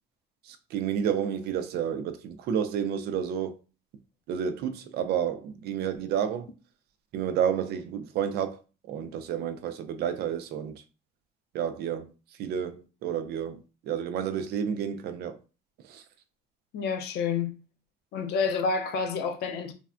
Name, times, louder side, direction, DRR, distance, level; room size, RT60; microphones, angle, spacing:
voice 1, 0.5-3.5 4.3-6.5 7.1-8.6 8.8-10.8 11.5-12.1 12.4-15.4 15.8-16.0, right 8 dB, 75° right, 0.4 m, -30 dB
voice 2, 16.7-17.5 18.1-19.7, left 5 dB, 75° left, 0.5 m, -28 dB
3.3 x 2.1 x 2.4 m
cardioid pair, 110°, 17 cm